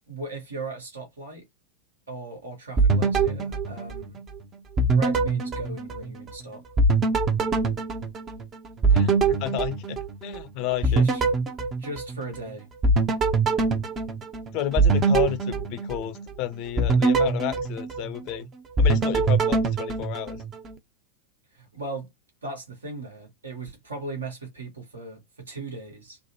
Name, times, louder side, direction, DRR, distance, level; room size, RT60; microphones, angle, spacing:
voice 1, 0.1-1.4 2.1-4.2 4.9-6.6 10.8-11.2 11.8-12.7 21.5-22.1 22.4-26.2, right 3 dB, 70° right, 1.4 m, -37 dB
sound 1, 2.8-4.4 4.8-6.4 6.8-10.4 10.8-12.4 12.8-16.3 16.8-18.4 18.8-20.7, right 3 dB, 25° right, 0.6 m, -23 dB
voice 2, 8.9-11.0 14.5-18.5 18.8-20.4, left 13 dB, 40° left, 0.5 m, -31 dB
3.2 x 2.1 x 2.8 m
figure-of-eight pair, 90°, 0 cm